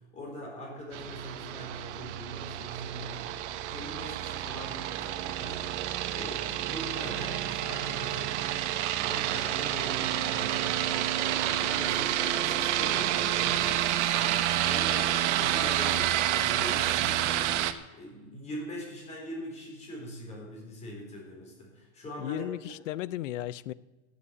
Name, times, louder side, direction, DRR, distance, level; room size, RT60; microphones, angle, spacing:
voice 1, 0.0-3.3 3.7-8.6 8.9-10.9 11.3-17.5 17.9-22.5, equal, 15° left, 4.2 m, -42 dB
sound 1, 0.9-17.7, right 12 dB, 60° right, 1.1 m, -29 dB
voice 2, 22.2-23.7, left 14 dB, 65° left, 0.8 m, -35 dB
16.5 x 8.4 x 8.3 m
supercardioid pair, 180°, 40 cm